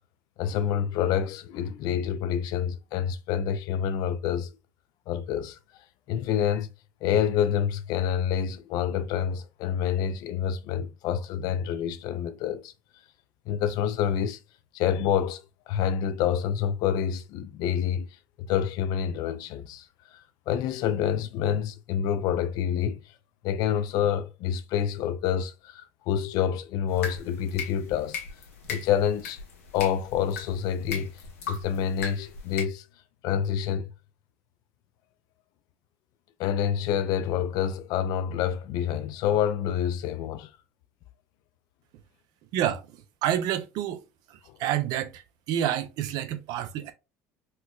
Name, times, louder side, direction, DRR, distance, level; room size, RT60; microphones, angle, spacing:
voice 1, 0.4-4.5 5.1-5.6 6.1-6.7 7.0-12.7 13.5-14.4 14.7-15.4 15.7-18.1 18.4-19.9 20.1-23.0 23.4-28.2 28.7-29.4 29.7-31.1 31.5-32.9 33.2-33.9 36.4-40.5, left 9 dB, 60° left, 0.4 m, -27 dB
sound 1, 26.9-32.6, left 5 dB, 90° left, 1.0 m, -39 dB
voice 2, 42.5-44.0 44.3-46.9, right 11 dB, 60° right, 0.5 m, -29 dB
4.3 x 2.1 x 2.2 m
supercardioid pair, 85°, 7 cm